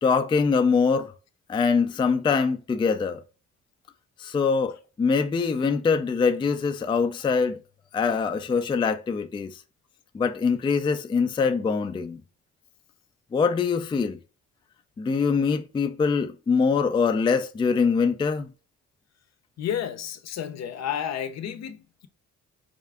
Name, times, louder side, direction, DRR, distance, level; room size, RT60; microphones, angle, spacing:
voice 1, 0.0-1.1 1.5-3.2 4.2-7.6 7.9-9.6 10.1-12.2 13.3-14.2 15.0-18.5, left 5 dB, 15° left, 0.3 m, -23 dB
voice 2, 19.6-22.1, left 9 dB, 60° left, 0.6 m, -31 dB
4.4 x 2.4 x 3.3 m
cardioid pair, 90°, 30 cm